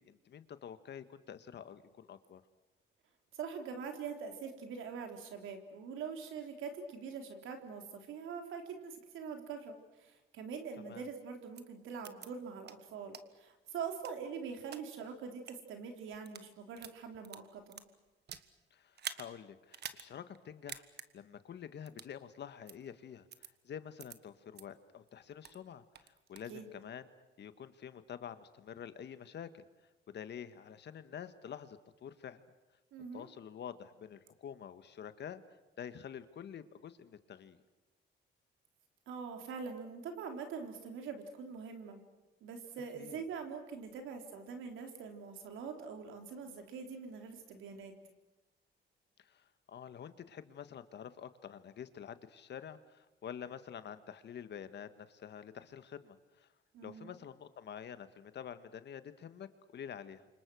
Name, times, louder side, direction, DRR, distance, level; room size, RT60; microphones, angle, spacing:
voice 1, 0.0-2.4 10.9-11.1 18.7-20.9 21.1-27.1 27.4-29.6 30.1-32.4 33.1-35.4 35.8-37.6 42.9-43.2 49.2-56.5 56.8-60.3, left 8 dB, 60° left, 11 dB, 1.6 m, -48 dB
voice 2, 3.3-17.8 26.5-26.7 32.9-33.3 39.1-42.0 42.4-48.0 56.7-57.2, right 6 dB, 80° right, 4 dB, 3.8 m, -44 dB
sound 1, 11.5-11.6 12.0-12.3 12.6-12.7 13.1-13.2 13.8-14.8 15.3-15.5 16.1-16.5 16.8-18.5 18.9-19.3 19.7-20.0 20.3-20.4 20.7-21.1 21.9-22.1 22.7-22.8 23.3-23.5 24.0-24.1 24.5-24.6 25.1-25.6 25.9-26.5, right 8 dB, 60° right, 1.5 m, -46 dB
29.0 x 26.0 x 6.4 m, 1.1 s
cardioid pair, 90°, 20 cm